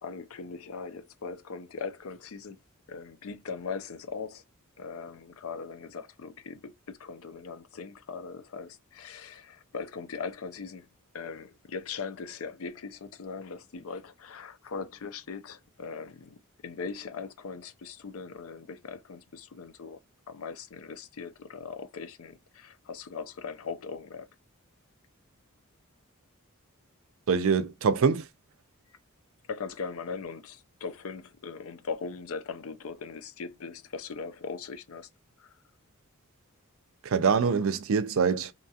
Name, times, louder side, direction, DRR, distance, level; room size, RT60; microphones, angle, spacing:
voice 1, 0.0-2.6 2.9-4.4 4.8-10.9 11.1-20.0 20.3-24.3 29.5-35.1 35.4-35.5, left 5 dB, 70° left, 0.5 m, -40 dB
voice 2, 27.3-28.3 37.0-38.5, right 5 dB, 65° right, 0.4 m, -24 dB
2.8 x 2.3 x 2.7 m
head